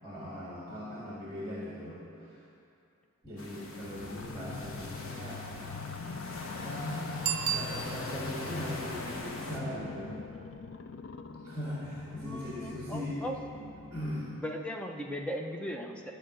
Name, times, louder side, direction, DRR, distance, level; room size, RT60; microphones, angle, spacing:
voice 1, 0.0-2.4 3.2-5.7 6.1-6.2 6.5-7.1 7.5-10.2 11.4-13.2 13.5-14.3, left 1 dB, 20° right, -7 dB, 1.8 m, -39 dB
sound 1, 3.4-9.6, left 2 dB, 75° left, 1.3 m, -42 dB
sound 2, 3.8-14.3, left 5 dB, 60° left, 0.4 m, -43 dB
Bicycle bell, 7.2-8.4 13.8-13.9, right 10 dB, 60° right, 0.5 m, -33 dB
voice 2, 12.1-13.4 14.4-16.1, equal, 5° left, 2 dB, 0.7 m, -38 dB
12.5 x 5.1 x 7.6 m, 2.6 s
head